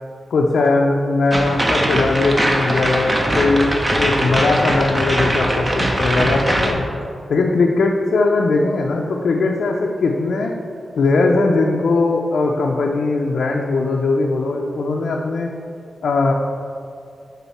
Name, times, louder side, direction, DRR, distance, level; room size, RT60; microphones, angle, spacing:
voice 1, 0.3-7.0 7.3-10.5 11.0-15.5 16.0-16.3, left 3 dB, 80° left, 0 dB, 0.4 m, -19 dB
sound 1, 1.3-6.7, right 1 dB, 25° right, 0.7 m, -20 dB
7.0 x 3.7 x 4.1 m, 2.5 s
wide cardioid pair, 95°, 0 cm